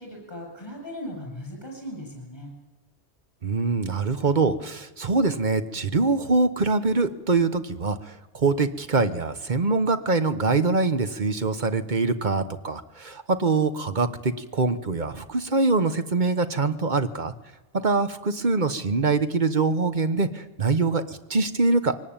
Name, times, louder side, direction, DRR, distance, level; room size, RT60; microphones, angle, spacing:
voice 1, 0.0-2.5, equal, 25° left, 2 dB, 7.9 m, -38 dB
voice 2, 3.4-17.3 17.7-21.9, right 3 dB, 45° right, 10 dB, 1.3 m, -24 dB
23.0 x 18.5 x 9.0 m, 1.1 s
omnidirectional pair, 1.1 m